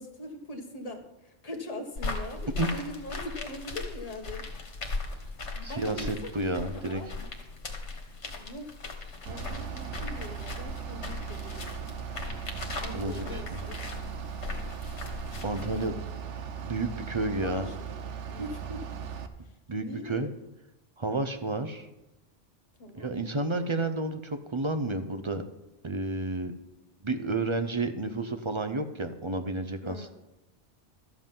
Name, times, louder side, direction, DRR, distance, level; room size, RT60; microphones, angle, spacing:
voice 1, 0.0-4.5 5.5-7.3 8.4-8.7 9.0-12.0 12.8-13.8 17.4-18.8 19.7-20.3 22.8-23.2 29.8-30.1, left 1 dB, 30° left, 2 dB, 1.5 m, -41 dB
sound 1, 2.0-15.9, left 3 dB, 70° left, 1.8 m, -38 dB
voice 2, 5.6-7.0 12.9-13.6 15.4-16.0 16.6-17.7 19.7-20.3 21.0-21.9 23.0-25.4 25.8-26.5 27.0-30.1, right 2 dB, 30° right, 8 dB, 0.6 m, -31 dB
Bus / Idling, 9.3-19.3, right 7 dB, 80° right, 1.1 m, -38 dB
13.0 x 7.7 x 5.4 m, 0.96 s
omnidirectional pair, 1.2 m